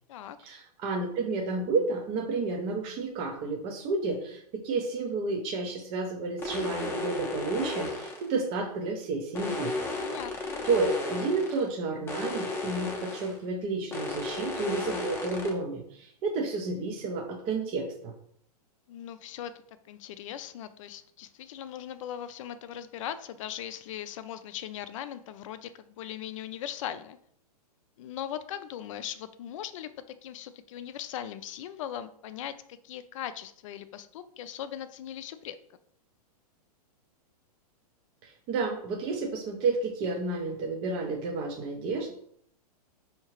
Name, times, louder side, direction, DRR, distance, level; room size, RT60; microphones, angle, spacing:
voice 1, 0.4-9.7 10.6-18.1 38.2-42.1, right 3 dB, 30° right, 1 dB, 0.5 m, -31 dB
sound 1, 6.4-8.3 9.3-11.7 12.1-13.4 13.9-15.5, left 2 dB, 10° left, 0.6 m, -34 dB
voice 2, 9.9-10.7 18.9-19.5 19.8-27.2 28.0-29.9 30.2-32.6 32.8-35.6, left 10 dB, 55° left, 12 dB, 0.4 m, -39 dB
4.6 x 2.8 x 3.0 m, 0.65 s
hypercardioid pair, 140°, 20 cm